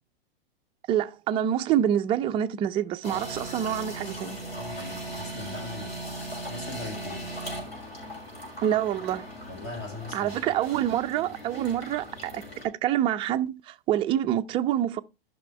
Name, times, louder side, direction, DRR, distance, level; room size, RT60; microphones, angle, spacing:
voice 1, 0.9-4.4 8.6-9.2 10.1-15.0, right 11 dB, 20° right, 0.4 m, -26 dB
sound 1, 3.0-12.6, right 1 dB, 85° left, 4.2 m, -38 dB
voice 2, 4.6-5.9 6.4-7.3 9.5-10.4 10.7-10.8, left 3 dB, 50° left, 6.2 m, -40 dB
13.0 x 5.5 x 3.2 m
figure-of-eight pair, 100°, 30 cm